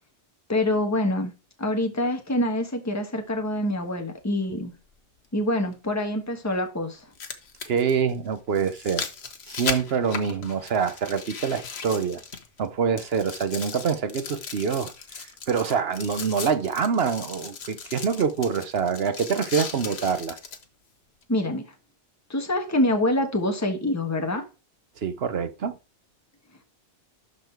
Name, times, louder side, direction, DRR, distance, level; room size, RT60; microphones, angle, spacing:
voice 1, 0.5-1.3 1.6-4.7 5.3-7.0 21.3-21.6 22.3-24.4, left 1 dB, 15° left, 1.3 m, -25 dB
sound 1, 3.7-3.8 5.7-5.8 6.9-12.7 13.0-20.6 21.2-21.3, left 5 dB, 70° left, 1.4 m, -37 dB
voice 2, 7.6-9.1 9.5-12.2 12.6-14.9 15.2-20.4 25.0-25.8, right 6 dB, 65° right, 1.0 m, -25 dB
12.0 x 4.3 x 4.5 m
omnidirectional pair, 1.1 m